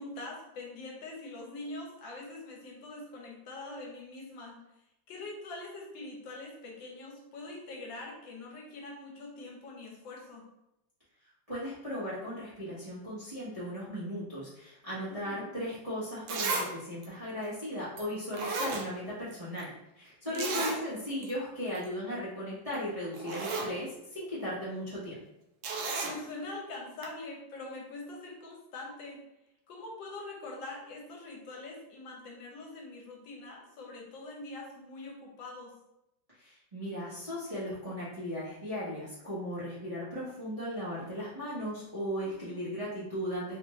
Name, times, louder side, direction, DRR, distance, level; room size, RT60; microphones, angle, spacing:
voice 1, 0.0-4.6 5.1-10.4 15.1-15.5 20.2-20.7 26.0-29.2 29.7-35.7 42.2-42.6, left 2 dB, 75° left, -1 dB, 1.4 m, -44 dB
voice 2, 11.5-19.7 20.0-25.2 36.4-43.6, equal, 20° right, -11 dB, 1.1 m, -37 dB
Zipper (clothing), 15.7-15.8 16.3-16.7 17.0-17.1 18.0-18.1 18.3-19.3 19.6-19.7 20.4-20.8 21.2-21.3 21.7-21.9 22.7-22.8 23.1-23.7 25.6-26.2 27.0-27.1, right 3 dB, 85° right, 1.4 m, -33 dB
3.5 x 2.5 x 3.1 m, 0.87 s
omnidirectional pair, 2.1 m